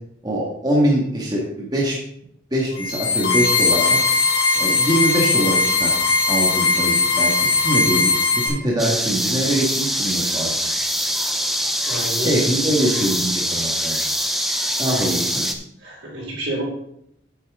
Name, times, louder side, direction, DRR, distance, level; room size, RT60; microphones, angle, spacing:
voice 1, 0.2-2.0 2.5-4.0 4.6-5.9 6.3-10.7 12.2-14.0 14.8-15.5, right 1 dB, 20° right, -4 dB, 1.7 m, -23 dB
sound 1, 2.7-8.5, left 4 dB, 55° left, 3.1 m, -19 dB
sound 2, 8.8-15.5, equal, ahead, 0.6 m, -23 dB
voice 2, 11.9-12.5 15.8-16.6, right 1 dB, 70° right, -3 dB, 4.0 m, -28 dB
8.9 x 8.6 x 3.7 m, 0.74 s
head